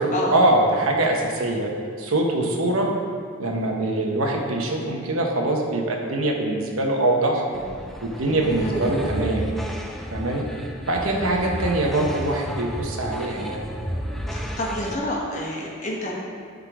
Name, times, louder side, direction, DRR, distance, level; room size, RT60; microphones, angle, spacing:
voice 1, 0.0-1.7 2.0-2.9 3.4-7.4 8.0-9.5 10.1-10.5 10.9-13.6, right 1 dB, 85° right, 1 dB, 1.1 m, -23 dB
sound 1, 7.5-15.0, equal, ahead, 0.4 m, -32 dB
voice 2, 11.1-11.5 14.3-16.1, left 1 dB, 35° left, -3 dB, 1.3 m, -29 dB
10.5 x 3.8 x 4.8 m, 2.2 s
head